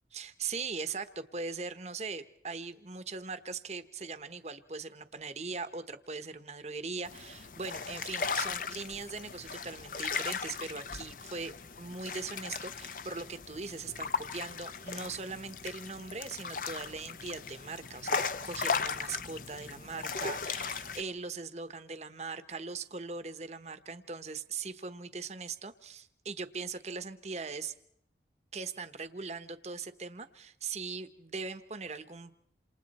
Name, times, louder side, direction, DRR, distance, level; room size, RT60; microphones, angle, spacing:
voice 1, 0.1-27.7 28.5-32.3, right 4 dB, 40° right, 10 dB, 1.1 m, -40 dB
sound 1, 7.0-21.0, left 5 dB, 50° left, 0.8 m, -37 dB
28.0 x 27.5 x 4.3 m, 0.73 s
head